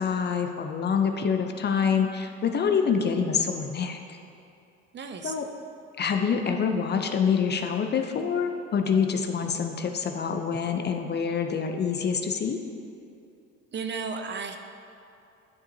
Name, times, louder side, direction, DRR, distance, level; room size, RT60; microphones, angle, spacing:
voice 1, 0.0-4.0 5.2-5.4 6.0-12.6, left 6 dB, 30° left, 5 dB, 0.5 m, -26 dB
voice 2, 4.9-5.3 13.7-14.6, right 5 dB, 35° right, 6 dB, 0.5 m, -33 dB
10.5 x 5.6 x 2.7 m, 2.6 s
supercardioid pair, 85°, 33 cm